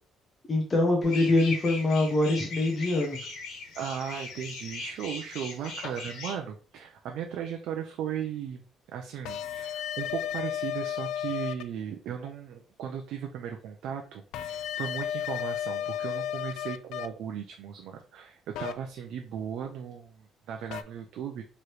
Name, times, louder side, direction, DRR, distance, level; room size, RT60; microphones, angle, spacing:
voice 1, 0.5-3.2, left 2 dB, 20° left, 0 dB, 0.7 m, -24 dB
sound 1, 1.0-6.4, left 3 dB, 75° left, 1.2 m, -39 dB
voice 2, 3.8-8.6 8.9-21.4, right 8 dB, 65° right, 3 dB, 0.4 m, -37 dB
sound 2, 9.2-11.6 14.3-17.1 18.5-18.7 20.7-20.8, left 10 dB, 90° left, 0.3 m, -33 dB
4.8 x 3.0 x 3.0 m, 0.41 s
cardioid pair, 175°, 0 cm